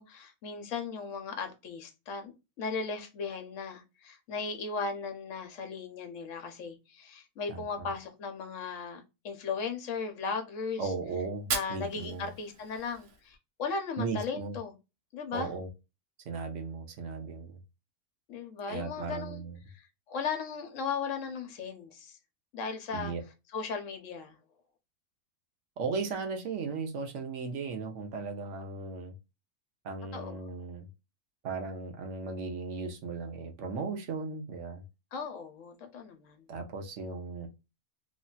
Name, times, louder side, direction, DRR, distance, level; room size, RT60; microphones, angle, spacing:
voice 1, 0.0-2.3 2.6-10.9 11.5-14.7 15.1-15.5 18.3-19.4 19.7-22.2 22.5-23.1 23.5-24.3 30.1-30.4 35.1-36.4, left 5 dB, 60° left, 1.1 m, -37 dB
voice 2, 7.5-7.9 10.8-12.3 14.0-14.6 15.3-15.7 16.2-17.6 18.7-19.6 22.9-23.2 25.8-29.1 29.8-30.9 31.4-34.8 36.5-37.5, right 4 dB, 60° right, 1.0 m, -36 dB
Fire, 11.3-13.4, right 4 dB, 80° right, 1.4 m, -38 dB
3.3 x 2.7 x 2.2 m
omnidirectional pair, 1.6 m